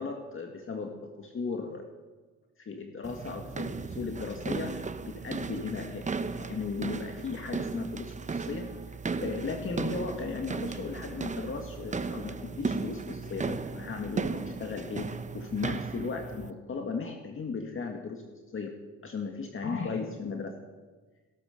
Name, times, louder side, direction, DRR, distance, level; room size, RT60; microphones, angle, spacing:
voice 1, 0.0-1.8 2.6-18.7 19.0-20.5, left 4 dB, 45° left, 3 dB, 1.9 m, -36 dB
sound 1, 3.0-16.5, right 4 dB, 25° right, 0.9 m, -36 dB
16.5 x 12.5 x 6.7 m, 1.3 s
cardioid pair, 90°, 30 cm